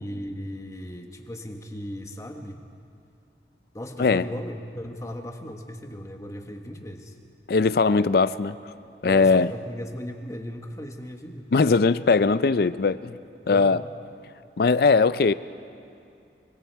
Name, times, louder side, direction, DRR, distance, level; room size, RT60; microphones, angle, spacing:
voice 1, 0.0-2.6 3.7-7.1 9.0-11.5 13.4-13.7, equal, 15° left, 4 dB, 1.3 m, -37 dB
voice 2, 7.5-8.6 9.0-9.5 11.5-13.1 13.5-13.8 14.6-15.3, left 4 dB, 55° left, 15 dB, 0.4 m, -20 dB
25.0 x 23.5 x 4.7 m, 2.5 s
head